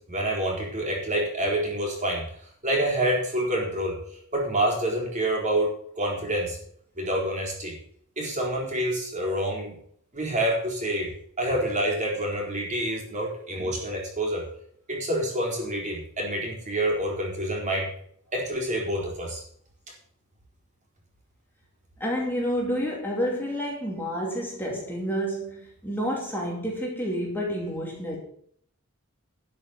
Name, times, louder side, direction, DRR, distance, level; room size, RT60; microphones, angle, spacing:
voice 1, 0.1-2.3 2.6-6.6 7.0-7.8 8.2-9.8 10.1-14.5 14.9-17.9 18.3-19.4, right 1 dB, 35° right, -1 dB, 4.2 m, -27 dB
voice 2, 22.0-28.2, equal, 10° left, -2 dB, 2.6 m, -29 dB
12.0 x 6.2 x 7.1 m, 0.63 s
head